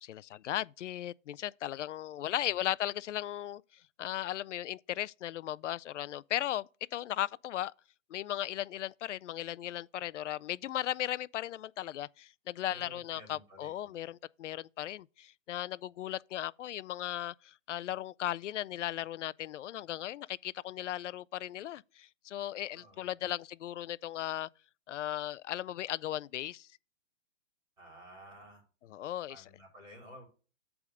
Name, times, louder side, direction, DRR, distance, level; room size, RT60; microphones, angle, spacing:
voice 1, 0.0-3.6 4.0-7.7 8.1-24.5 24.9-26.7 28.9-29.4, left 12 dB, 75° left, 0.5 m, -37 dB
voice 2, 12.7-14.0 22.7-23.3 27.8-28.6 29.3-30.3, equal, 10° right, 3.3 m, -53 dB
8.4 x 3.6 x 6.4 m
hypercardioid pair, 170°, 37 cm